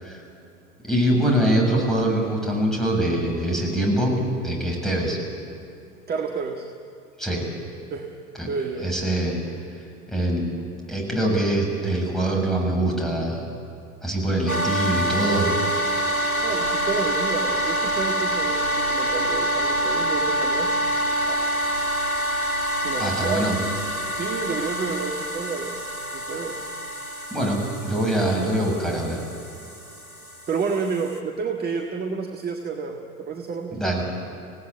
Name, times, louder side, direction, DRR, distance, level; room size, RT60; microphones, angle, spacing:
voice 1, 0.9-5.2 7.2-7.5 8.4-8.5 8.8-9.4 10.1-10.4 10.9-13.5 14.0-15.5 23.0-23.6 27.3-29.2 33.7-34.0, right 1 dB, ahead, -1 dB, 7.3 m, -23 dB
voice 2, 6.1-6.7 7.9-8.1 8.5-8.9 16.4-20.7 21.3-21.7 22.8-23.5 24.0-25.8 26.1-26.6 30.5-34.0, right 5 dB, 20° right, 2 dB, 1.7 m, -30 dB
sound 1, 14.5-31.2, equal, 80° left, 2.8 m, -26 dB
26.5 x 18.0 x 8.9 m, 2.7 s
figure-of-eight pair, 80°, 42 cm